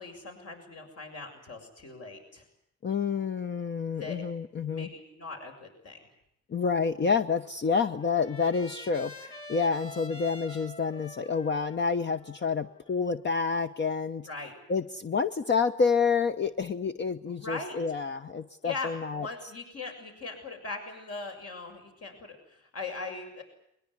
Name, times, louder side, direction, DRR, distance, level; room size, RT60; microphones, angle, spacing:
voice 1, 0.0-2.5 3.9-4.2 4.7-6.0 14.3-14.5 17.3-17.8 18.6-23.4, left 3 dB, 55° left, 4 dB, 7.0 m, -40 dB
voice 2, 2.8-4.9 6.5-14.3 14.7-19.3, left 5 dB, 40° left, 9 dB, 0.9 m, -28 dB
Trumpet, 7.3-13.5, left 1 dB, 20° left, 5.0 m, -48 dB
22.5 x 21.5 x 9.9 m, 0.77 s
cardioid pair, 105°, 29 cm